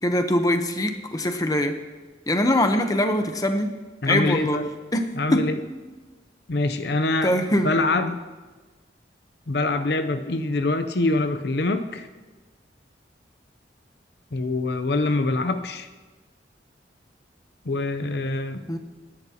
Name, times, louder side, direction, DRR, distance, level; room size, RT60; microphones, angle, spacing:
voice 1, 0.0-1.8 2.3-3.8 4.0-4.6 4.9-5.5 7.2-8.1 18.7-18.8, left 1 dB, 20° left, 6 dB, 0.9 m, -23 dB
voice 2, 4.0-4.7 5.1-5.6 6.5-7.3 7.6-8.2 9.5-12.1 14.3-15.9 17.6-18.6, left 2 dB, 60° left, 9 dB, 0.7 m, -24 dB
26.5 x 11.0 x 2.9 m, 1.3 s
head